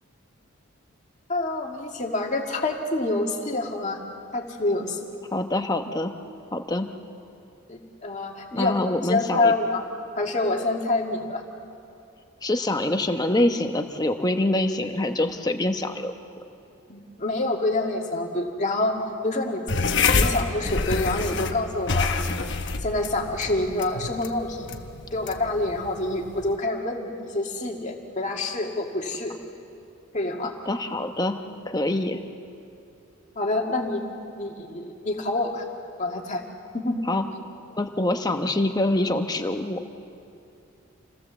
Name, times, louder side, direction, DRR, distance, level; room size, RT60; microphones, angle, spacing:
voice 1, 1.3-4.0 4.3-5.1 7.7-8.8 9.0-9.8 10.2-11.4 16.9-19.0 19.2-19.6 20.1-22.3 22.8-24.7 25.1-29.3 30.1-30.5 33.4-34.0 34.4-35.6 36.0-36.4 36.7-37.0, left 2 dB, 35° left, 1 dB, 2.1 m, -27 dB
voice 2, 5.3-6.1 6.5-6.9 8.5-9.5 12.4-16.1 30.6-31.4 31.7-32.2 37.1-37.2 37.7-39.8, left 1 dB, 20° left, 6 dB, 1.0 m, -25 dB
sound 1, 19.7-26.6, left 4 dB, 55° left, 1.1 m, -27 dB
28.0 x 17.5 x 7.3 m, 2.6 s
head